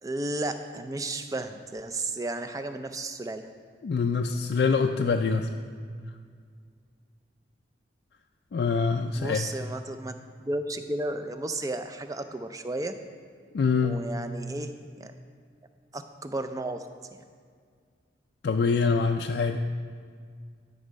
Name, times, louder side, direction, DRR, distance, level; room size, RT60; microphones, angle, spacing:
voice 1, 0.0-3.5 9.2-12.9 13.8-15.1 15.9-16.9 17.1-17.2, right 2 dB, 20° right, 8 dB, 0.4 m, -33 dB
voice 2, 3.8-5.5 8.5-9.5 13.5-14.0 18.4-19.6, left 5 dB, 60° left, 4 dB, 0.3 m, -25 dB
11.5 x 5.4 x 5.1 m, 2.1 s
head